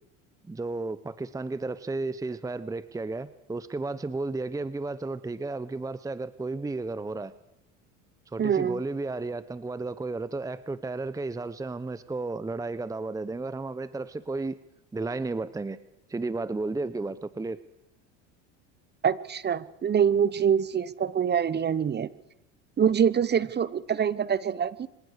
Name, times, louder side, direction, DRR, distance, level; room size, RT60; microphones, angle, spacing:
voice 1, 0.4-7.3 8.3-14.6 14.9-15.8 16.1-17.6, right 3 dB, 10° right, 15 dB, 0.9 m, -33 dB
voice 2, 8.4-8.8 19.0-22.1 22.8-24.9, right 8 dB, 30° right, 18 dB, 1.1 m, -25 dB
25.5 x 18.0 x 6.7 m, 0.84 s
supercardioid pair, 100°, 36 cm